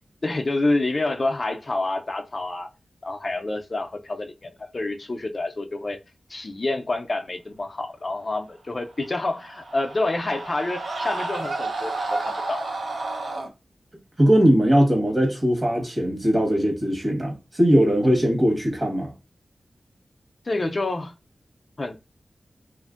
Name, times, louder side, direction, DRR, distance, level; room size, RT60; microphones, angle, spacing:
voice 1, 0.2-2.7 3.0-6.0 6.3-12.6 20.5-21.1 21.8-22.0, left 2 dB, 40° left, 0.4 m, -28 dB
Screaming, 9.0-13.5, right 2 dB, 80° right, 0.6 m, -31 dB
voice 2, 14.2-19.1, equal, 35° right, 1.2 m, -20 dB
2.8 x 2.5 x 2.4 m
wide cardioid pair, 90°, 0 cm